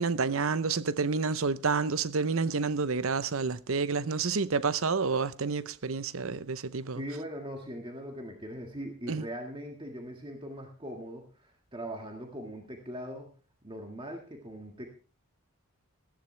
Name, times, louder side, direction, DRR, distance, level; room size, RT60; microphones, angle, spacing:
voice 1, 0.0-7.0 9.1-9.3, right 4 dB, 65° right, 0.7 m, -29 dB
voice 2, 6.9-13.3 13.6-14.9, equal, 20° right, 1.8 m, -40 dB
15.0 x 14.0 x 3.3 m
head